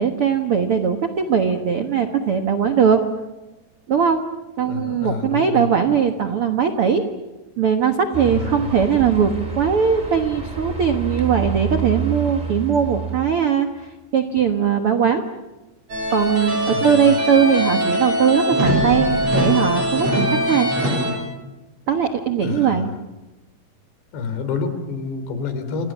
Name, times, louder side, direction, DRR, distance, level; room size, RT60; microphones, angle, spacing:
voice 1, 0.0-3.0 3.9-4.2 4.6-7.0 7.6-15.2 16.1-20.7 21.9-22.9, right 7 dB, 90° right, 6 dB, 1.2 m, -20 dB
voice 2, 4.6-5.7 8.3-8.7 16.7-17.0 22.4-22.8 24.1-25.9, left 5 dB, 80° left, 9 dB, 5.5 m, -28 dB
sound 1, 8.1-13.4, right 6 dB, 10° right, 4.0 m, -28 dB
sound 2, 15.9-21.1, equal, 35° right, 8.9 m, -21 dB
29.0 x 28.0 x 7.4 m, 1.1 s
omnidirectional pair, 4.9 m